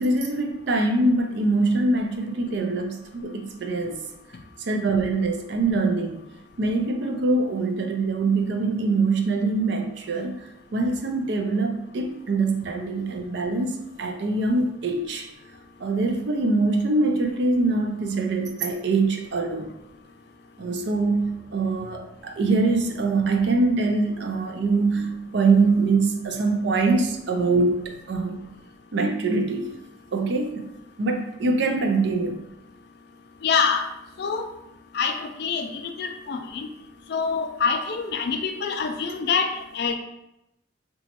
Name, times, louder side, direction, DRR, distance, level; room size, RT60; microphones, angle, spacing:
voice 1, 0.0-4.0 4.7-6.2 6.6-10.3 10.7-15.3 15.8-19.7 20.6-28.4 28.9-29.7 30.1-30.5 31.0-32.3, right 3 dB, 60° right, 4 dB, 0.4 m, -23 dB
voice 2, 33.4-33.8 34.2-34.4 34.9-36.7 37.1-39.9, left 5 dB, 55° left, 6 dB, 0.4 m, -25 dB
4.0 x 2.3 x 2.8 m, 0.85 s
head